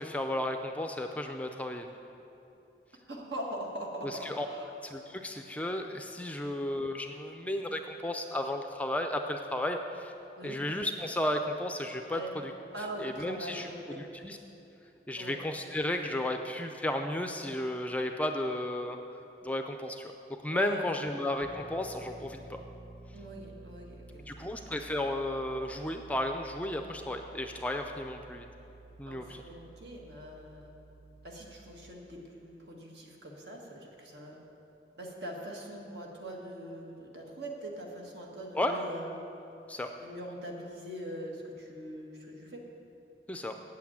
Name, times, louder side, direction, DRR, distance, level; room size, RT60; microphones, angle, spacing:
voice 1, 0.0-1.9 4.0-4.5 4.8-10.1 10.4-12.5 13.0-13.7 14.0-14.4 15.1-19.0 19.4-22.6 24.3-28.5 29.0-29.4 38.5-38.8 39.7-39.9 43.3-43.5, left 1 dB, 10° left, 5 dB, 0.4 m, -33 dB
voice 2, 3.1-4.7 10.4-10.6 12.1-12.3 12.7-14.1 15.2-15.4 20.4-21.0 23.1-24.3 29.1-30.7 31.2-34.4 35.0-39.2 40.0-42.6, right 1 dB, 75° right, 0 dB, 1.7 m, -42 dB
sound 1, 21.4-31.9, right 2 dB, 10° right, 1.0 m, -52 dB
8.4 x 7.8 x 8.6 m, 2.9 s
head